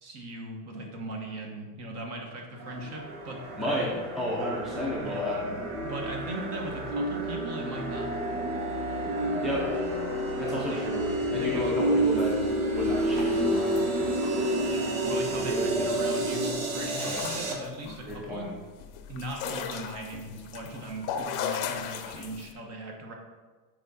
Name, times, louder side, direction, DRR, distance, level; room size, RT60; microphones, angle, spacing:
voice 1, 0.0-3.8 5.0-5.3 5.8-8.1 10.6-10.8 11.3-11.8 14.7-18.5 19.1-23.1, right 1 dB, 40° right, 1 dB, 1.1 m, -39 dB
sound 1, 2.6-17.5, right 1 dB, 90° right, 1.3 m, -29 dB
voice 2, 3.6-3.9 4.2-5.6 9.4-9.8 10.4-11.1 11.3-12.3 12.7-14.1 15.4-15.9 17.0-17.2 18.1-18.5, left 1 dB, ahead, -5 dB, 0.4 m, -32 dB
sound 2, 12.0-13.9 14.2-14.6 15.1-15.2 15.3-15.9 16.2-22.5, left 8 dB, 55° left, 0.6 m, -38 dB
6.2 x 4.7 x 4.0 m, 1.4 s
cardioid pair, 175°, 39 cm